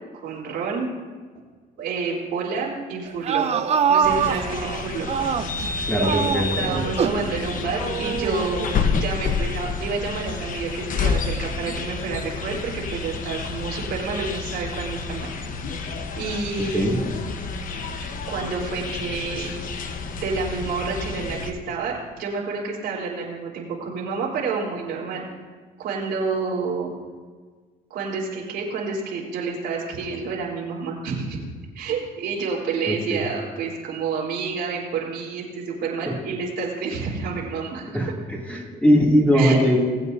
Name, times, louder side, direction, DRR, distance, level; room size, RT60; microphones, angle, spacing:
voice 1, 0.1-0.9 1.8-5.3 6.1-6.2 6.6-15.3 16.2-17.3 18.3-19.5 20.2-25.2 25.8-26.9 27.9-31.4 31.7-37.9 39.3-39.6, right 4 dB, 80° right, -4 dB, 3.7 m, -29 dB
sound 1, 3.1-5.7 6.0-7.3 7.8-8.9, right 7 dB, 40° right, 0.6 m, -24 dB
sound 2, 4.0-21.5, left 5 dB, 50° left, 1.1 m, -29 dB
voice 2, 5.9-6.9 16.7-17.0 32.9-33.3 36.1-36.2 37.9-38.1 38.5-39.8, equal, 10° left, -3 dB, 2.6 m, -20 dB
20.5 x 8.3 x 2.7 m, 1.5 s
cardioid pair, 110°, 17 cm